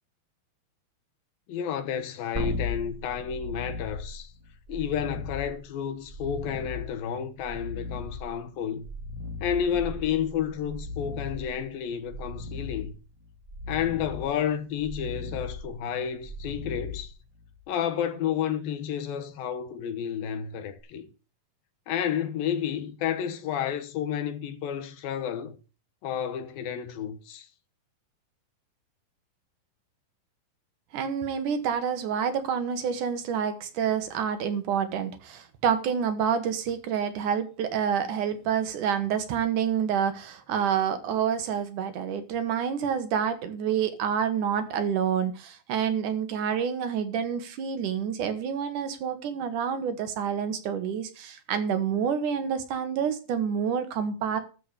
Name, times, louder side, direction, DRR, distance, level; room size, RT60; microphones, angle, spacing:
voice 1, 1.5-4.3 4.7-8.9 9.4-13.0 13.7-17.1 17.7-21.1 21.9-25.6 26.0-27.5, left 8 dB, 80° left, 3.0 m, -31 dB
sound 1, 2.3-17.6 20.8-20.9, left 3 dB, 10° right, 1.5 m, -37 dB
voice 2, 30.9-54.4, right 7 dB, 65° right, 2.6 m, -28 dB
13.0 x 4.8 x 8.4 m
omnidirectional pair, 4.1 m